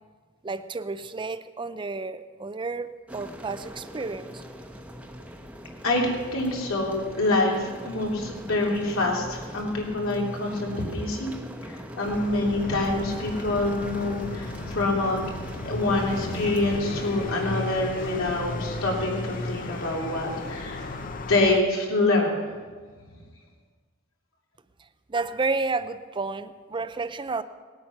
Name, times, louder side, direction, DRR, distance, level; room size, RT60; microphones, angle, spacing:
voice 1, 0.4-4.4 25.1-27.4, right 3 dB, 25° right, 12 dB, 0.5 m, -31 dB
sound 1, 3.1-17.1, equal, 5° right, 1.0 m, -41 dB
voice 2, 5.8-11.3 11.6-15.2 15.6-21.0 21.3-22.4, left 2 dB, 75° left, -2 dB, 3.1 m, -26 dB
sound 2, 12.0-21.6, left 2 dB, 40° left, 0.6 m, -35 dB
sound 3, 15.9-21.1, left 1 dB, 60° left, 2.7 m, -42 dB
19.0 x 8.7 x 5.9 m, 1.5 s
head